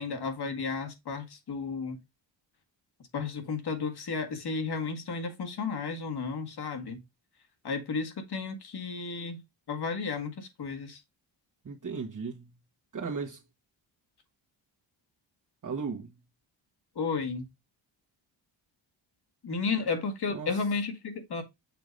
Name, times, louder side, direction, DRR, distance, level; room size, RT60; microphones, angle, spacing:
voice 1, 0.0-2.0 3.1-7.0 7.6-9.4 9.7-11.0 17.0-17.5 19.4-21.4, left 4 dB, 55° left, 1.9 m, -33 dB
voice 2, 11.6-12.5 12.9-13.4 15.6-16.1 19.8-19.9 20.3-20.6, right 5 dB, 40° right, 1.4 m, -36 dB
6.8 x 2.9 x 5.2 m
cardioid pair, 105°, 45 cm